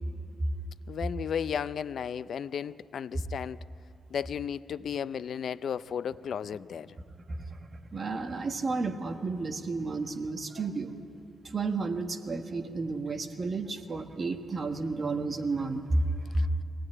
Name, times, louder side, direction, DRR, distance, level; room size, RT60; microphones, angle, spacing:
voice 1, 0.9-3.6 4.1-6.9, left 8 dB, 60° left, 0.5 m, -34 dB
voice 2, 7.3-7.7 7.9-10.9 11.5-16.0 16.3-16.5, right 3 dB, 35° right, 1.5 m, -32 dB
23.5 x 17.5 x 9.9 m
cardioid pair, 125°, 0 cm